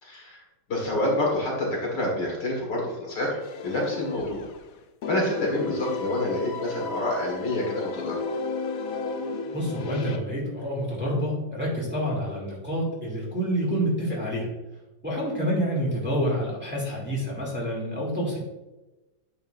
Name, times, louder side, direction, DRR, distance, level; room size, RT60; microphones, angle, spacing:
voice 1, 0.0-0.4 0.7-4.5 5.1-8.3, left 1 dB, 55° left, -3 dB, 2.4 m, -28 dB
sound 1, 3.4-4.7 5.0-10.2, left 4 dB, 80° left, 0.7 m, -34 dB
voice 2, 9.5-14.5 15.0-18.4, equal, 5° right, -5 dB, 2.4 m, -28 dB
9.3 x 6.9 x 2.6 m, 1.1 s
omnidirectional pair, 2.3 m